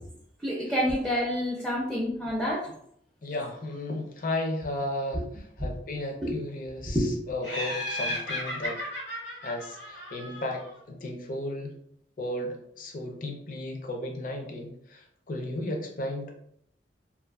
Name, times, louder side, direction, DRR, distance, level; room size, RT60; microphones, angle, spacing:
voice 1, 0.4-2.7 5.6-5.7 6.2-6.3 6.8-7.1, equal, ahead, -4 dB, 0.4 m, -28 dB
voice 2, 3.2-8.8 9.4-11.7 12.2-16.3, left 1 dB, 50° left, 3 dB, 0.5 m, -34 dB
Laughter, 7.4-10.7, left 1 dB, 80° left, 1.0 m, -35 dB
2.4 x 2.4 x 2.3 m, 0.67 s
head